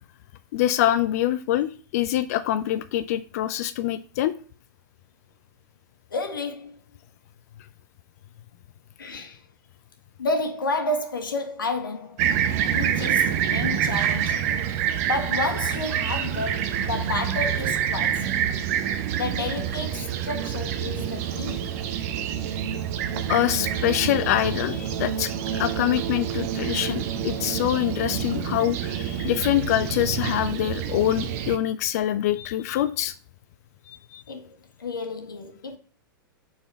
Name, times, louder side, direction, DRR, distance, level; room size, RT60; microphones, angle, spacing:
voice 1, 0.5-4.3 9.1-9.2 23.3-33.1 33.9-34.2, left 12 dB, 45° left, 0.4 m, -25 dB
voice 2, 6.1-6.8 9.0-9.4 10.2-12.3 12.7-14.5 15.0-18.6 19.1-21.7 34.3-35.8, left 2 dB, 70° left, 1.3 m, -31 dB
Fixed-wing aircraft airplane, 12.2-31.6, right 9 dB, 45° right, 0.7 m, -27 dB
5.0 x 4.1 x 5.6 m
figure-of-eight pair, 100°, 12 cm